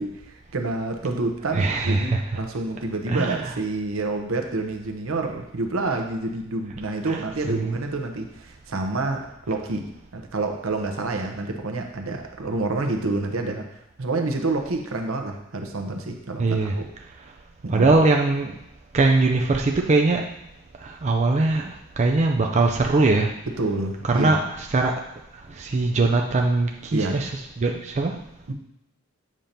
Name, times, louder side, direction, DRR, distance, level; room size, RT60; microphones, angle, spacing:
voice 1, 0.0-13.7 14.0-16.9 17.6-17.9 23.6-24.4 26.9-27.3 28.5-28.6, right 2 dB, 70° right, 4 dB, 0.8 m, -28 dB
voice 2, 1.6-2.2 3.1-3.4 7.1-7.2 7.5-7.8 16.4-16.7 17.7-18.6 18.9-20.2 20.8-23.3 24.0-24.4 24.7-24.9 25.3-27.3 27.6-28.2, right 3 dB, 35° right, 2 dB, 0.4 m, -21 dB
7.4 x 2.9 x 5.1 m, 0.84 s
head